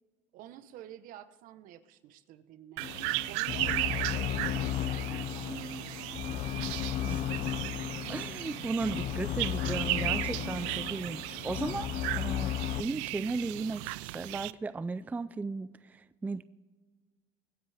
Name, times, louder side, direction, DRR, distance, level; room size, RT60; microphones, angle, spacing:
voice 1, 0.3-2.8 3.3-5.1 6.3-6.6, right 12 dB, 65° right, 13 dB, 1.0 m, -50 dB
sound 1, 2.8-12.8, left 12 dB, 50° left, 0.6 m, -35 dB
sound 2, 2.8-14.5, right 20 dB, 85° right, 0.4 m, -36 dB
voice 2, 4.9-6.1 7.0-7.2 8.1-11.9 12.2-16.4, right 3 dB, 10° right, 15 dB, 0.3 m, -36 dB
23.5 x 9.9 x 3.5 m, 1.5 s
supercardioid pair, 100°, 15 cm